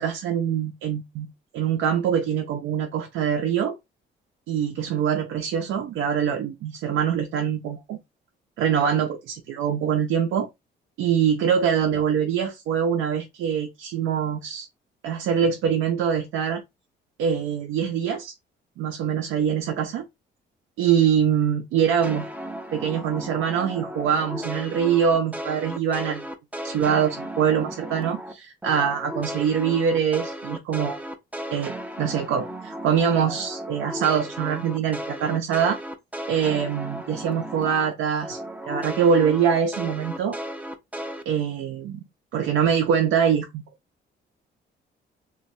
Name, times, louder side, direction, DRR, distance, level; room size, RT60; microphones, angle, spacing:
voice 1, 0.0-3.7 4.5-8.0 8.6-10.5 11.0-14.7 15.0-16.6 17.2-18.3 18.8-20.0 20.8-22.3 22.7-26.2 26.6-31.0 31.5-31.7 32.0-35.8 36.3-38.4 38.7-40.4 41.3-42.0 42.3-43.6, right 8 dB, 90° right, 0.5 m, -24 dB
sound 1, 22.0-28.3 28.6-37.9 38.2-41.2, equal, 5° right, 0.4 m, -35 dB
3.1 x 2.2 x 2.6 m
cardioid pair, 90°, 20 cm